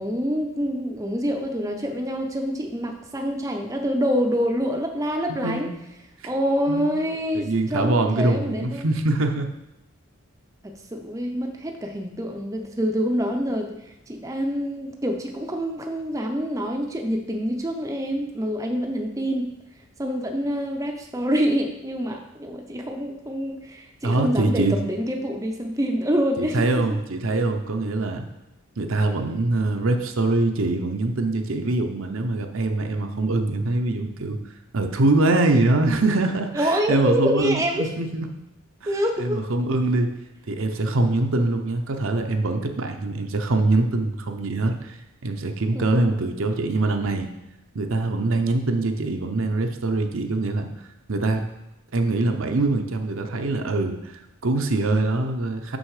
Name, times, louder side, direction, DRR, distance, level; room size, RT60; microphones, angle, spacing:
voice 1, 0.0-5.7 6.2-8.9 10.6-13.8 14.1-19.5 20.0-26.7 36.5-37.9 38.9-39.4 45.8-46.6, equal, 15° right, 2 dB, 0.6 m, -26 dB
voice 2, 5.4-5.8 6.2-6.3 6.7-7.0 7.3-9.5 24.0-24.7 26.4-28.3 28.8-34.4 34.7-38.3 38.8-40.1 40.5-45.0 45.2-47.3 47.7-50.7 51.1-51.4 51.9-55.8, right 2 dB, 65° right, 5 dB, 0.7 m, -23 dB
6.3 x 6.3 x 4.9 m, 0.89 s
head